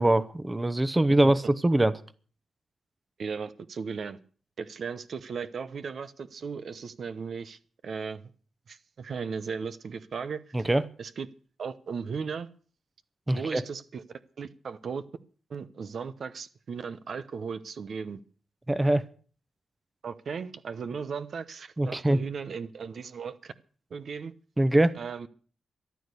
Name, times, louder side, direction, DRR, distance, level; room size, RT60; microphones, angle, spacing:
voice 1, 0.0-1.9 10.5-10.8 13.3-13.6 18.7-19.0 21.8-22.2 24.6-25.0, right 1 dB, 20° right, 15 dB, 0.9 m, -23 dB
voice 2, 3.2-4.2 4.6-8.3 8.7-10.5 11.0-11.3 11.6-12.5 13.3-14.0 14.4-15.0 15.5-18.2 20.0-23.5 23.9-24.3 24.9-25.3, right 5 dB, 60° right, 12 dB, 0.8 m, -36 dB
14.0 x 10.5 x 6.7 m, 0.42 s
cardioid pair, 80°, 0 cm